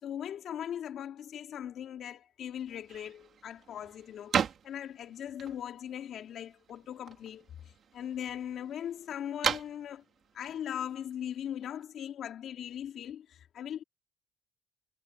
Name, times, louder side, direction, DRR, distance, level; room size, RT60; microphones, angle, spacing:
voice 1, 0.0-7.5 7.9-10.0 10.3-13.8, left 9 dB, 55° left, 3.5 m, -39 dB
sound 1, 2.7-11.8, right 8 dB, 45° right, 4.3 m, -39 dB
cardioid pair, 140°, 0 cm